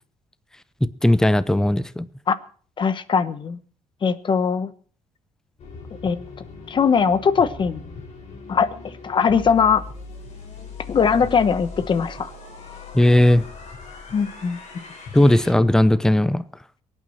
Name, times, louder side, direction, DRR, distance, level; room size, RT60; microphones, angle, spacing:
voice 1, 1.0-2.1 12.9-13.4 15.1-16.4, left 1 dB, 5° left, 16 dB, 0.7 m, -17 dB
voice 2, 2.8-3.6 4.0-4.7 6.0-6.2 6.7-7.8 8.5-8.7 9.0-9.8 10.9-12.3 14.1-14.6, left 6 dB, 40° left, 14 dB, 1.0 m, -20 dB
sound 1, 5.6-15.5, left 4 dB, 60° left, 5.2 m, -39 dB
23.5 x 9.2 x 4.3 m, 0.43 s
cardioid pair, 120°, 13 cm